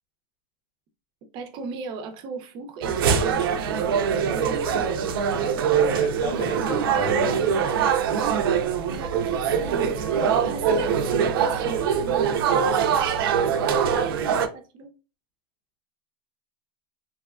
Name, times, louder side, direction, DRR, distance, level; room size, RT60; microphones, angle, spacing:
voice 1, 1.3-5.0 8.9-12.4 14.3-14.9, right 4 dB, 40° right, 0.6 m, -37 dB
sound 1, 2.8-14.5, right 7 dB, 90° right, 0.4 m, -23 dB
voice 2, 5.9-7.8, left 4 dB, 65° left, 0.6 m, -35 dB
2.7 x 2.1 x 2.4 m
supercardioid pair, 140°, 12 cm